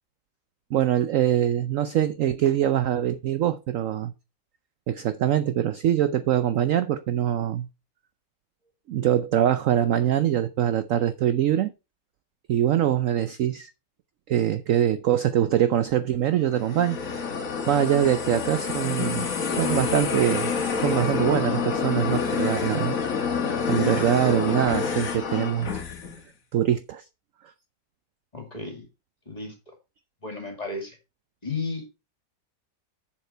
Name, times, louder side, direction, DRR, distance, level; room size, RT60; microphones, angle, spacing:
voice 1, 0.7-4.1 4.9-7.7 8.9-11.7 12.5-13.7 14.3-17.0 17.7-23.0 23.7-25.8 26.5-27.0, right 11 dB, 65° right, 0.8 m, -23 dB
sound 1, 16.5-26.2, left 5 dB, 55° left, 1.7 m, -27 dB
voice 2, 28.3-28.9 29.3-29.7 30.2-31.0 31.4-32.0, left 3 dB, 20° left, 2.3 m, -34 dB
7.4 x 7.3 x 4.3 m
omnidirectional pair, 1.9 m